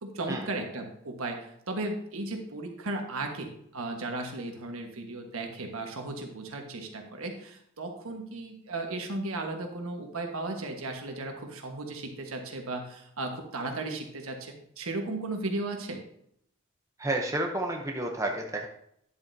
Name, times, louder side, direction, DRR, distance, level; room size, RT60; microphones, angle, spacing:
voice 1, 0.0-16.0, right 2 dB, 70° right, 3 dB, 1.4 m, -35 dB
voice 2, 17.0-18.7, right 1 dB, 15° right, 1 dB, 0.7 m, -30 dB
10.5 x 7.5 x 2.7 m, 0.73 s
head